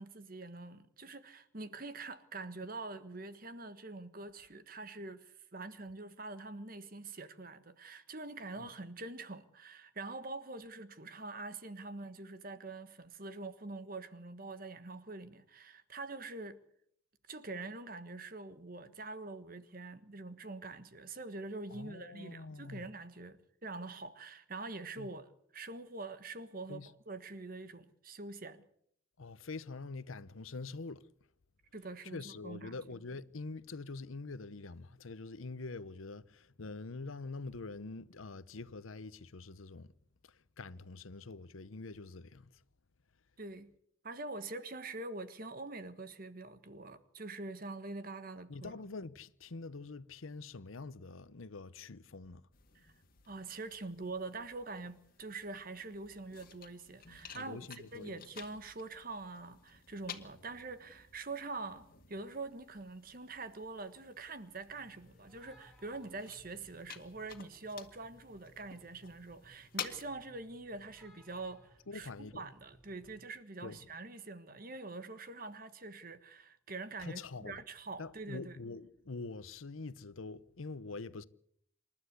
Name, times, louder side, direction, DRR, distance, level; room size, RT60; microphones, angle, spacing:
voice 1, 0.0-16.6 17.3-28.6 31.7-32.8 43.4-43.7 44.0-48.7 52.7-52.9 53.3-78.6, right 3 dB, 45° right, 1.4 m, -45 dB
voice 2, 21.7-22.8 25.0-25.1 26.7-26.9 29.2-31.1 32.0-39.9 40.3-42.5 48.5-52.4 57.3-58.2 71.9-72.4 73.6-73.8 77.0-77.6 78.0-81.2, left 3 dB, 85° left, 0.9 m, -45 dB
sound 1, 52.5-70.0, left 8 dB, 45° left, 2.0 m, -52 dB
sound 2, 64.7-73.2, right 1 dB, ahead, 4.4 m, -63 dB
27.5 x 12.5 x 8.2 m
head